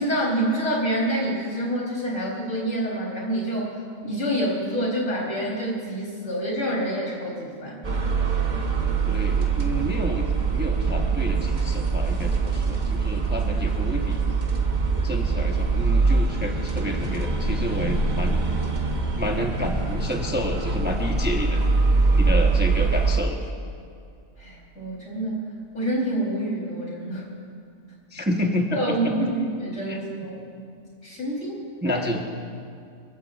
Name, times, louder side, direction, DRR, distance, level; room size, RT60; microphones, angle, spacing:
voice 1, 0.0-3.7 4.0-7.8 24.4-27.3 28.7-30.4 31.0-32.0, right 1 dB, 65° left, -4 dB, 4.1 m, -27 dB
sound 1, 7.8-23.2, right 4 dB, 35° right, 1.1 m, -23 dB
voice 2, 9.1-14.2 15.0-18.4 19.2-21.6 22.2-23.4 28.1-29.1 29.9-30.0 31.8-32.3, equal, 10° right, 1 dB, 0.9 m, -29 dB
26.0 x 15.0 x 2.5 m, 2.4 s
omnidirectional pair, 1.4 m